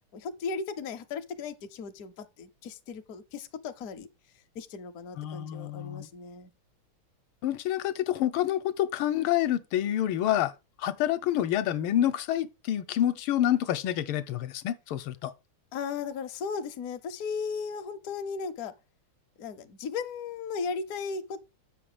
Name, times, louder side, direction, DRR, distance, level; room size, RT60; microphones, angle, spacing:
voice 1, 0.1-4.1 4.5-6.5 15.7-18.7 19.4-21.4, left 5 dB, 60° left, 0.9 m, -36 dB
voice 2, 5.2-6.1 7.4-10.5 10.8-15.3, left 12 dB, 80° left, 1.5 m, -28 dB
7.7 x 5.9 x 4.9 m
omnidirectional pair, 2.4 m